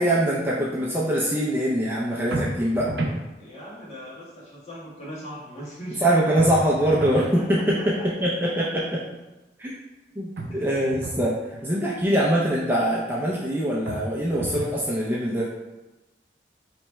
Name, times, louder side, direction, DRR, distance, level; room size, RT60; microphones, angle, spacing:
voice 1, 0.0-2.9 6.0-9.0 9.6-9.7 10.2-15.5, right 1 dB, 10° right, -6 dB, 0.5 m, -23 dB
sound 1, 2.3-3.2 6.4-7.3 10.4-11.3 13.9-14.8, right 2 dB, 80° right, 0.6 m, -31 dB
voice 2, 3.4-6.5 7.1-7.8 10.5-10.7, equal, 35° left, -7 dB, 1.4 m, -40 dB
3.3 x 3.0 x 4.4 m, 1.1 s
head